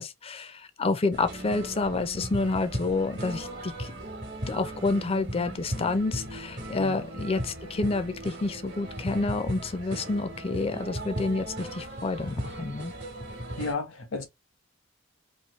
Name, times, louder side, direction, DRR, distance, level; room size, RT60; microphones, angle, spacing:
voice 1, 0.0-4.0 4.5-12.9, left 3 dB, 30° left, 0.4 m, -29 dB
sound 1, 1.1-13.7, right 1 dB, 55° right, 1.1 m, -37 dB
voice 2, 13.6-14.3, left 3 dB, 85° left, 1.1 m, -32 dB
3.1 x 2.6 x 3.0 m
head